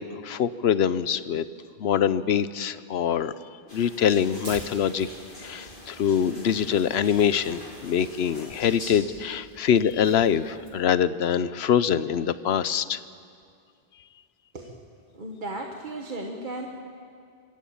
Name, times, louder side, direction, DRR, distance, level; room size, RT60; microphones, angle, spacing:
voice 1, 0.0-1.4 1.8-3.3 3.7-5.1 5.4-13.0, left 8 dB, 90° left, 15 dB, 1.0 m, -24 dB
sound 1, 3.7-9.0, left 1 dB, 55° left, 3.1 m, -44 dB
Tearing, 4.4-10.9, right 2 dB, 75° right, 3.0 m, -48 dB
voice 2, 14.5-14.9 15.1-16.7, right 2 dB, 50° right, 2 dB, 1.4 m, -35 dB
25.5 x 14.0 x 8.7 m, 2.4 s
omnidirectional pair, 1.0 m